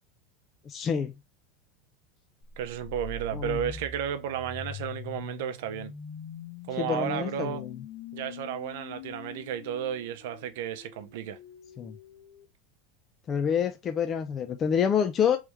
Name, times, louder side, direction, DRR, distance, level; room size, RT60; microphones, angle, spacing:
voice 1, 0.7-1.1 3.3-3.7 6.8-7.8 11.8-12.0 13.3-15.4, left 7 dB, 30° left, 0.4 m, -27 dB
sound 1, 2.5-12.4, left 6 dB, 65° left, 1.1 m, -43 dB
voice 2, 2.6-5.9 6.7-7.6 8.1-11.4, right 9 dB, 75° right, 0.6 m, -33 dB
3.5 x 3.1 x 3.1 m
supercardioid pair, 130°, 0 cm